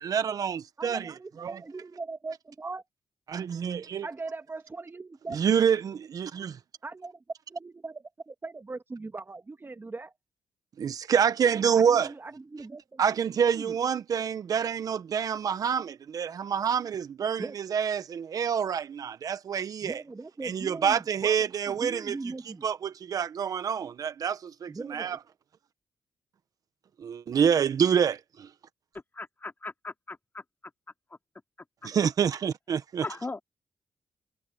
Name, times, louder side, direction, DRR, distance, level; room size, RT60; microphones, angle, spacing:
voice 1, 0.0-1.6 3.3-4.1 5.3-6.6 10.8-12.1 13.0-20.0 20.4-22.2 22.6-25.2 27.0-28.5 31.8-33.0, right 7 dB, 65° right, 1.2 m, -27 dB
voice 2, 0.8-2.8 4.0-5.4 6.8-7.2 7.5-10.1 11.8-13.0 13.5-13.8 17.4-17.6 19.8-22.7 24.7-25.2, right 3 dB, 35° right, 2.4 m, -40 dB
voice 3, 29.1-30.4 31.8-31.9 33.0-33.4, left 3 dB, 30° left, 3.6 m, -38 dB
supercardioid pair, 55°, 7 cm